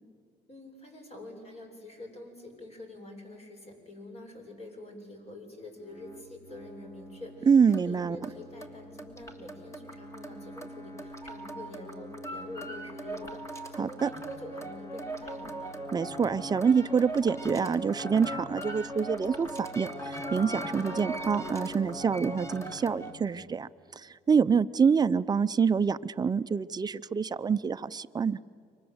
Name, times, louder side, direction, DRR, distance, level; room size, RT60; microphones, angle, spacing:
voice 1, 0.5-15.8, left 1 dB, 40° left, 3 dB, 7.0 m, -46 dB
sound 1, 5.8-23.2, right 1 dB, 15° left, 2.8 m, -40 dB
voice 2, 7.5-8.2 13.8-14.1 15.9-19.5 19.8-23.7 24.0-28.4, right 6 dB, 25° right, 12 dB, 0.6 m, -26 dB
30.0 x 25.0 x 8.0 m, 2.3 s
cardioid pair, 110°, 17 cm